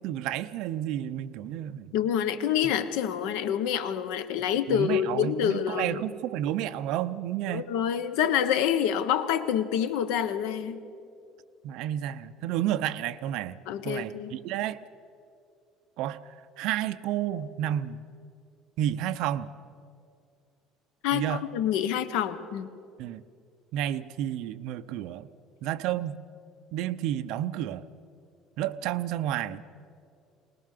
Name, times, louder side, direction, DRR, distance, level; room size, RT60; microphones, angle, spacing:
voice 1, 0.0-2.0 4.7-7.7 11.6-13.6 13.8-14.8 16.0-16.2 16.6-18.0 18.8-19.5 21.1-21.4 23.0-23.2 23.7-25.3 25.6-26.2 26.7-27.8 28.6-29.6, right 12 dB, 65° right, 11 dB, 0.7 m, -31 dB
voice 2, 1.9-6.1 7.5-10.8 13.7-14.3 21.0-22.7, left 9 dB, 85° left, 12 dB, 1.2 m, -27 dB
21.0 x 20.0 x 6.7 m, 2.5 s
cardioid pair, 160°, 0 cm